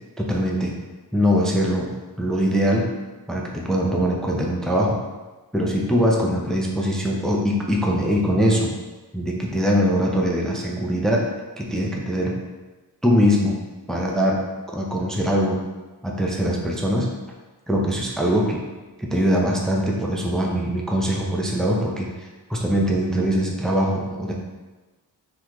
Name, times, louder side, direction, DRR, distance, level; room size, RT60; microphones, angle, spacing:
voice 1, 0.2-0.8 1.1-2.9 3.3-5.0 5.5-8.7 9.1-11.3 11.6-12.4 13.0-13.6 13.9-14.4 14.7-15.6 16.0-17.1 17.7-18.6 19.0-24.3, equal, ahead, -2 dB, 0.6 m, -22 dB
3.8 x 3.1 x 2.9 m, 1.2 s
cardioid pair, 55°, 43 cm